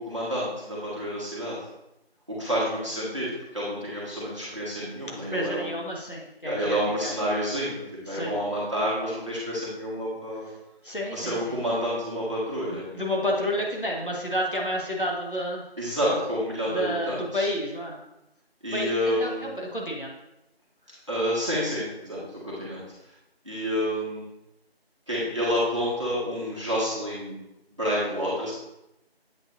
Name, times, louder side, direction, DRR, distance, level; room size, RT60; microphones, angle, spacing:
voice 1, 0.0-1.6 2.4-5.7 6.4-10.5 11.1-12.8 15.8-17.5 18.6-19.5 21.1-22.8 23.5-24.2 25.1-27.4 27.8-28.5, equal, 30° right, -7 dB, 1.9 m, -29 dB
voice 2, 5.3-7.1 8.1-8.4 10.8-11.6 12.7-15.6 16.7-18.0 18.7-20.1, equal, 55° left, -2 dB, 1.4 m, -30 dB
8.3 x 5.4 x 2.6 m, 0.89 s
figure-of-eight pair, 180°, 31 cm